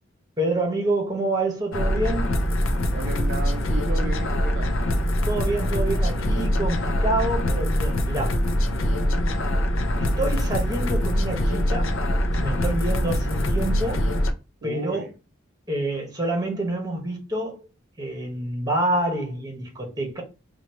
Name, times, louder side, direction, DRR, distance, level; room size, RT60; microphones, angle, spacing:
voice 1, 0.4-2.3 5.3-8.4 10.0-11.9 12.3-14.1 14.6-15.0 15.7-17.7 18.0-20.2, right 1 dB, 20° right, 1.2 m, -27 dB
sound 1, 1.7-14.3, equal, 80° left, 0.6 m, -23 dB
voice 2, 2.9-4.8 8.7-9.3 14.6-15.1, right 4 dB, 50° right, 0.4 m, -35 dB
3.0 x 2.4 x 4.3 m
head